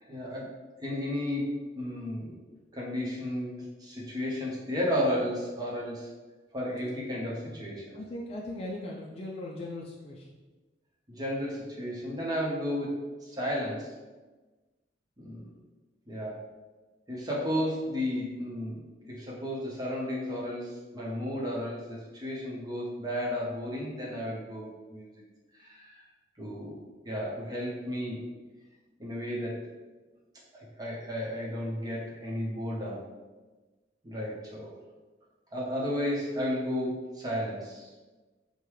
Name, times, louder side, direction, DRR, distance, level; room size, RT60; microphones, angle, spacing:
voice 1, 0.0-0.5 0.8-2.4 2.7-6.1 6.5-7.9 11.1-13.9 15.2-15.5 16.1-16.4 17.1-18.8 19.1-25.1 25.5-26.1 26.4-28.2 29.0-29.7 30.5-33.0 34.0-34.7 35.5-37.9, equal, 20° right, -4 dB, 0.9 m, -33 dB
voice 2, 7.9-10.3, left 1 dB, 35° left, -3 dB, 0.4 m, -39 dB
5.2 x 2.2 x 3.2 m, 1.2 s
head